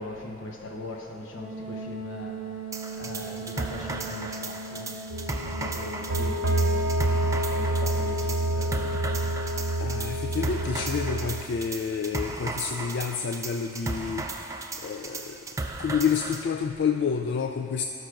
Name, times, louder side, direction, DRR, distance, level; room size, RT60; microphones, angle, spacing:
voice 1, 0.0-2.6 2.9-5.0 5.4-6.9 7.5-9.3, left 1 dB, 85° left, 1 dB, 1.0 m, -40 dB
Wind instrument woodwind instrument, 1.4-6.2, right 4 dB, ahead, 1.1 m, -39 dB
sound 1, 2.7-16.4, right 3 dB, 15° right, 0.4 m, -36 dB
sound 2, 5.1-11.4, right 1 dB, 80° right, 0.6 m, -27 dB
voice 2, 9.8-14.3 14.8-15.4 15.8-17.8, left 6 dB, 65° left, 5 dB, 0.3 m, -29 dB
17.5 x 6.3 x 2.5 m, 2.9 s
head